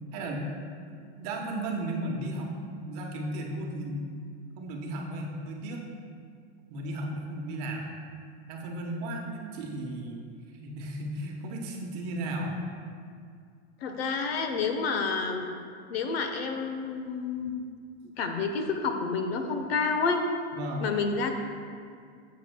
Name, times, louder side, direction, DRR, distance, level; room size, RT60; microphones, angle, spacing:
voice 1, 0.1-0.5 0.8-4.1 4.6-5.8 6.7-7.9 8.5-10.2 10.5-12.6 20.5-20.8, right 1 dB, 35° right, 0 dB, 1.0 m, -35 dB
voice 2, 13.8-15.5 15.9-17.5 18.2-20.2 20.8-21.4, left 4 dB, 65° left, 5 dB, 0.9 m, -29 dB
12.5 x 7.4 x 2.2 m, 2.2 s
supercardioid pair, 160°, 33 cm